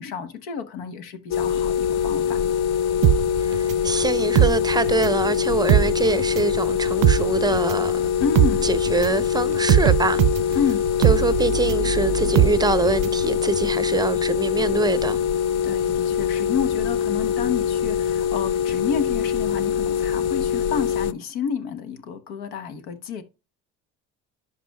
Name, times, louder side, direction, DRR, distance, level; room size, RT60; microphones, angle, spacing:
voice 1, 0.0-2.4 8.2-8.7 10.5-10.8 15.6-23.2, left 7 dB, 80° left, 1.2 m, -30 dB
sound 1, 1.3-21.1, left 8 dB, 45° left, 0.4 m, -23 dB
sound 2, 3.0-5.2 5.5-13.2 13.5-13.6, right 12 dB, 55° right, 0.5 m, -21 dB
voice 2, 3.5-8.0 8.6-10.2 11.0-15.2, right 3 dB, 10° right, 0.6 m, -24 dB
11.0 x 5.0 x 2.2 m
supercardioid pair, 80°, 38 cm